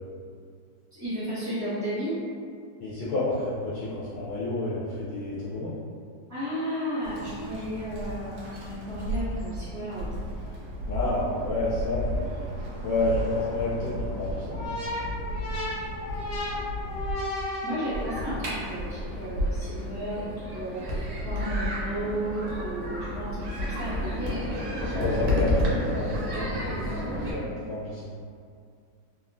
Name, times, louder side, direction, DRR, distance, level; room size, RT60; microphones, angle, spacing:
voice 1, 0.9-2.2 6.3-10.1 17.6-24.4, equal, 15° right, -15 dB, 0.7 m, -33 dB
voice 2, 2.8-5.7 10.8-12.5 12.8-14.7 24.8-28.1, left 2 dB, 85° left, -10 dB, 1.4 m, -30 dB
Bird, 7.0-17.1, equal, 80° right, 1.5 m, -35 dB
sound 1, 14.5-18.4, left 2 dB, 60° left, 1.2 m, -34 dB
sound 2, 17.9-27.3, equal, 65° right, 1.0 m, -30 dB
3.6 x 2.1 x 2.4 m, 2.3 s
omnidirectional pair, 2.1 m